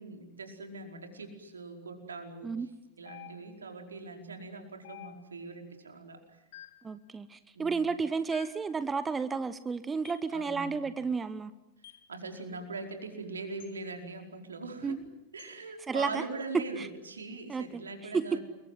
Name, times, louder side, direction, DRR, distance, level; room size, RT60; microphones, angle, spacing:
voice 1, 0.0-2.7 3.0-6.4 7.5-8.0 10.3-10.8 11.8-15.0 15.3-18.4, right 3 dB, 70° right, 4 dB, 4.9 m, -42 dB
sound 1, 3.1-3.7 4.8-5.5 6.5-6.9 8.3-8.7 10.0-10.3 11.8-12.1 13.6-13.8 15.4-15.6, left 13 dB, 55° left, 3.3 m, -51 dB
voice 2, 6.8-11.5 14.8-15.0 15.9-16.2 16.8-16.9 17.5-18.2, right 5 dB, 15° right, 14 dB, 1.0 m, -32 dB
28.5 x 23.0 x 7.8 m, 0.99 s
figure-of-eight pair, 90°, 0 cm